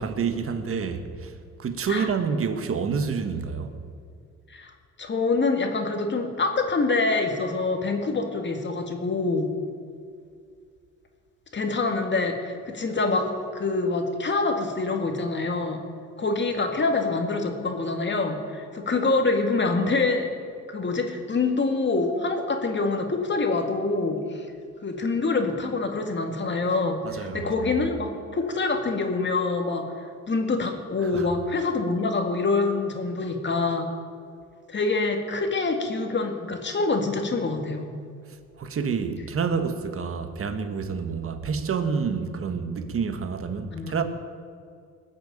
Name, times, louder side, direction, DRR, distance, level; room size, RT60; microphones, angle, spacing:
voice 1, 0.0-3.7 27.0-27.5 31.0-31.3 38.6-44.0, right 5 dB, 45° right, 8 dB, 1.4 m, -28 dB
voice 2, 5.0-9.5 11.5-15.8 16.2-20.3 20.7-24.5 24.8-29.9 30.3-33.9 34.7-37.9 43.7-44.0, left 3 dB, 35° left, 4 dB, 2.1 m, -25 dB
19.5 x 6.9 x 8.8 m, 2.2 s
cardioid pair, 90°, 30 cm